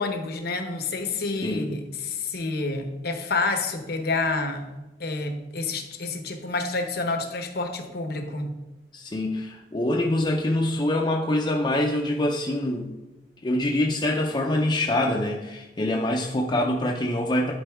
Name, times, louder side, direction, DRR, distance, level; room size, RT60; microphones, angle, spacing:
voice 1, 0.0-4.6 5.0-8.5, left 3 dB, 60° left, 6 dB, 0.9 m, -28 dB
voice 2, 8.9-12.9 13.4-17.5, left 1 dB, 25° left, -1 dB, 0.5 m, -25 dB
11.0 x 4.0 x 3.5 m, 1.0 s
head